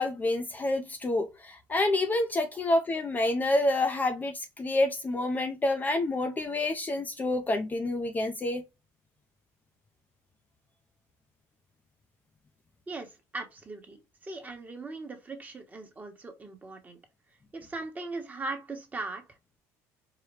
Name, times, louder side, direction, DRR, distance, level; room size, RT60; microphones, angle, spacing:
voice 1, 0.0-8.6, left 2 dB, 20° left, 0.5 m, -28 dB
voice 2, 12.9-17.0 17.5-19.3, right 3 dB, 20° right, 1.2 m, -39 dB
4.8 x 2.2 x 3.2 m
supercardioid pair, 95°, 8 cm